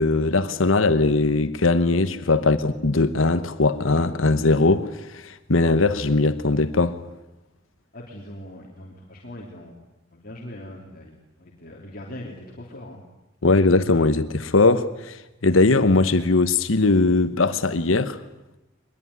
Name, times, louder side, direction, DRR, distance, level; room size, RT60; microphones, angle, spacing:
voice 1, 0.0-7.0 13.4-18.2, left 3 dB, 85° left, 1.2 m, -20 dB
voice 2, 7.9-9.8 10.1-13.0, left 1 dB, 45° left, 3.2 m, -41 dB
23.0 x 20.5 x 9.7 m
head